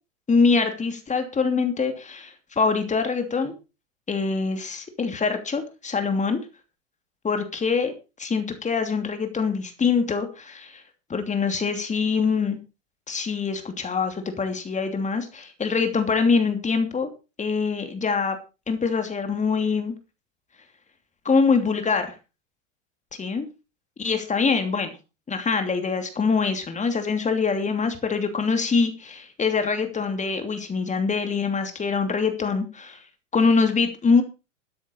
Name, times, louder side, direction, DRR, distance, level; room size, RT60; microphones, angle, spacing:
voice 1, 0.3-3.5 4.1-6.4 7.2-7.9 8.2-10.8 11.1-12.6 13.1-17.1 17.4-18.4 18.7-19.9 21.2-22.2 23.2-23.4 24.0-24.9 25.3-33.0 33.3-34.2, left 5 dB, 20° left, 7 dB, 2.9 m, -24 dB
14.0 x 10.0 x 4.6 m, 0.30 s
hypercardioid pair, 95°, 38 cm